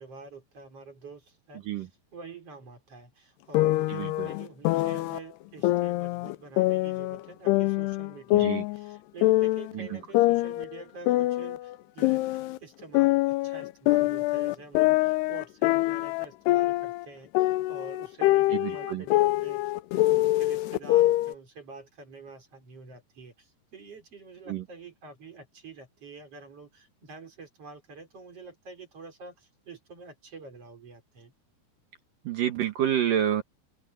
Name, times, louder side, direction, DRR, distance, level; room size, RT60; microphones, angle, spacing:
voice 1, 0.0-31.3, right 4 dB, 35° right, 5.5 m, -47 dB
sound 1, 3.5-5.2 5.6-7.2 7.5-9.7 10.1-12.6 12.9-17.1 17.3-21.3, left 17 dB, 85° left, 2.7 m, -24 dB
voice 2, 3.9-4.3 8.3-8.6 9.7-10.0 18.5-19.0 24.5-24.6 32.2-33.4, right 10 dB, 60° right, 2.8 m, -28 dB
omnidirectional pair, 4.7 m